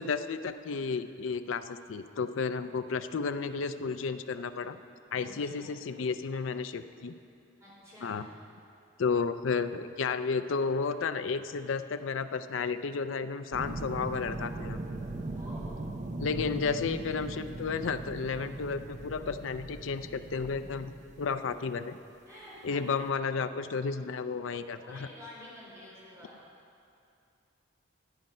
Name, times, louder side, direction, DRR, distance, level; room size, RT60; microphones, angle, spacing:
voice 1, 0.0-4.8 5.1-7.1 8.0-8.3 9.0-14.8 16.2-20.9 21.2-21.9 22.6-25.0, left 5 dB, 80° left, 10 dB, 0.5 m, -32 dB
voice 2, 5.1-5.8 7.6-8.2 15.3-15.8 22.3-22.9 24.8-26.4, left 1 dB, 15° right, -7 dB, 3.5 m, -49 dB
sound 1, 13.5-21.7 23.1-23.2, right 2 dB, 35° right, 0.5 m, -39 dB
13.5 x 8.9 x 5.5 m, 2.5 s
head